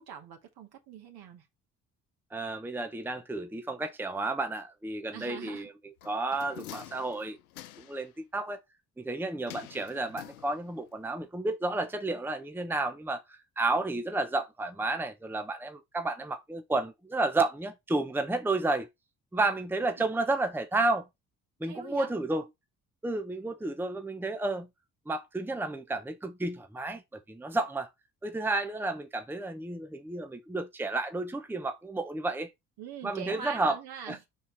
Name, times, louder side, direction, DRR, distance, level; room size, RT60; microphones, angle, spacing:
voice 1, 0.0-1.5 5.1-5.7 20.0-20.1 21.6-22.1 32.8-34.3, right 8 dB, 60° right, 2.2 m, -43 dB
voice 2, 2.3-5.7 6.0-7.4 7.8-8.6 9.0-18.9 19.3-21.1 21.6-22.5 23.0-24.7 25.1-27.0 27.3-27.9 28.2-32.5 33.0-33.8 34.1-34.3, right 2 dB, 5° right, 0.9 m, -31 dB
sound 1, 6.0-8.1 9.5-10.9 11.2-11.3, left 13 dB, 85° left, 0.7 m, -47 dB
5.6 x 4.3 x 4.2 m
hypercardioid pair, 50°, 43 cm